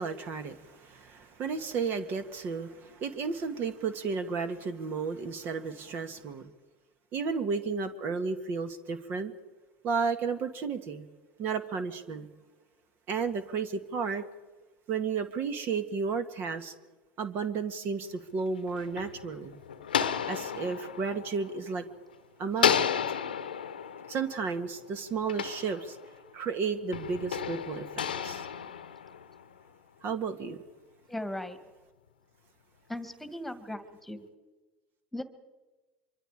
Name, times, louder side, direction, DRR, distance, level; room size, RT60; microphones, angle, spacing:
voice 1, 0.0-6.5 7.1-9.3 9.8-11.1 11.4-12.3 13.1-14.2 14.9-16.7 17.2-19.6 20.3-21.9 22.4-22.9 24.1-26.0 26.3-28.4 30.0-30.6, right 5 dB, 50° right, 9 dB, 1.8 m, -33 dB
sound 1, 18.4-22.1 22.6-26.3 26.9-29.6, left 8 dB, 90° left, 1.0 m, -33 dB
voice 2, 31.1-31.6 32.9-34.3 35.1-35.2, left 1 dB, 5° left, 10 dB, 2.0 m, -37 dB
25.5 x 24.0 x 5.0 m, 1.2 s
hypercardioid pair, 80°, 5 cm